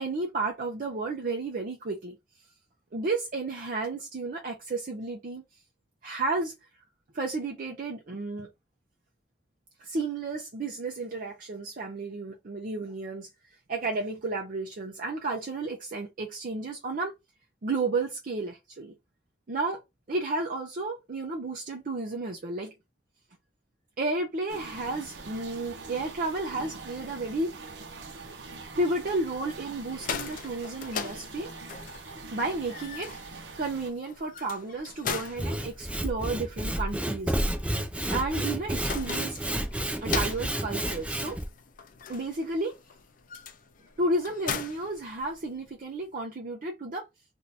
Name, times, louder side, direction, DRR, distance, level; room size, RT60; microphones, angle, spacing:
voice 1, 0.0-2.2 2.9-5.4 6.0-6.5 7.1-8.5 9.8-13.3 13.7-17.1 17.6-18.9 19.5-19.8 20.1-22.7 24.0-27.5 28.8-31.5 32.3-37.3 38.1-39.4 40.0-41.4 42.1-42.7 44.0-47.1, right 2 dB, 50° right, 0.6 m, -32 dB
sound 1, 24.5-33.9, right 3 dB, 85° right, 0.8 m, -43 dB
sound 2, 29.8-45.7, left 6 dB, 50° left, 0.5 m, -40 dB
Sawing / Wood, 35.2-41.5, right 1 dB, 5° right, 0.5 m, -30 dB
2.7 x 2.6 x 3.3 m
head